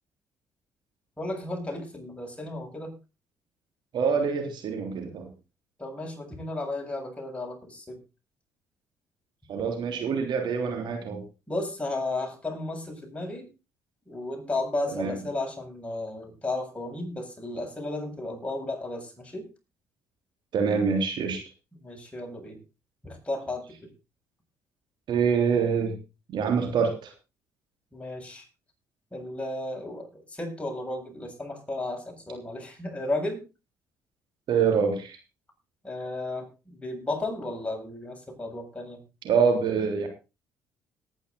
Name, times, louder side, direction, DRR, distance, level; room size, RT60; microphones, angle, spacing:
voice 1, 1.2-2.9 5.8-8.0 11.5-13.5 14.1-19.5 21.8-22.6 23.0-23.9 27.9-28.4 29.1-33.4 35.8-39.0, left 2 dB, 15° left, 1 dB, 7.6 m, -34 dB
voice 2, 3.9-5.3 9.5-11.2 14.9-15.1 20.5-21.4 25.1-26.0 26.3-27.1 34.5-35.2 39.2-40.1, right 6 dB, 55° right, 4 dB, 3.4 m, -25 dB
18.5 x 10.0 x 4.1 m, 0.30 s
hypercardioid pair, 50°, 9 cm